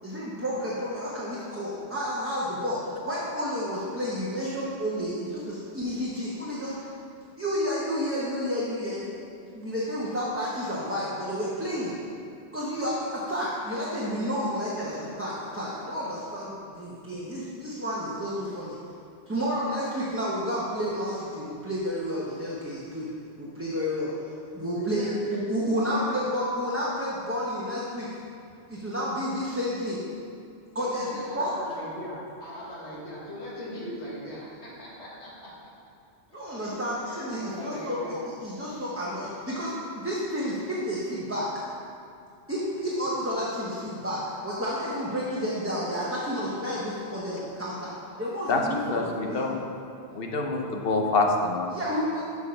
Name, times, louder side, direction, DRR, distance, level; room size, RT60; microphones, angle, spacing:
voice 1, 0.0-6.9 7.4-9.1 9.5-11.9 12.5-18.8 19.3-23.1 23.4-24.1 24.5-28.1 28.7-30.0 30.7-31.1 31.3-31.5 36.3-38.0 38.4-41.5 42.5-47.9 48.2-49.6 51.7-52.2, equal, 15° right, -7 dB, 0.9 m, -30 dB
voice 2, 24.7-25.1 25.7-26.1 31.1-35.5 36.6-36.8 37.2-38.2 38.7-39.1, equal, 80° left, -6 dB, 1.9 m, -39 dB
voice 3, 48.9-49.6 50.1-51.7, left 3 dB, 60° left, 2 dB, 0.9 m, -26 dB
6.6 x 4.9 x 5.6 m, 2.5 s
omnidirectional pair, 1.1 m